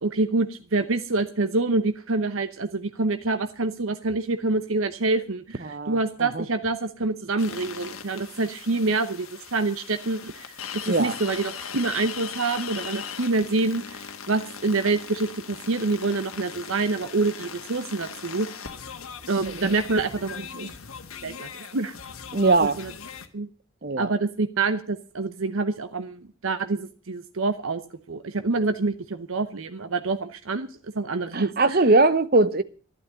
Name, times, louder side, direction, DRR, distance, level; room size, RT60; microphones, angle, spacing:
voice 1, 0.0-10.5 10.9-18.5 19.3-20.7 21.2-21.9 22.8-22.9 23.3-23.5 24.0-27.8 28.1-30.7 30.9-31.8, right 3 dB, 75° right, 0.9 m, -26 dB
voice 2, 5.6-6.5 10.9-11.1 19.5-19.7 22.3-22.8 23.8-24.1 31.3-32.6, right 3 dB, 45° right, 0.8 m, -21 dB
sound 1, 7.4-23.3, left 7 dB, 85° left, 1.4 m, -39 dB
12.0 x 11.5 x 6.8 m
head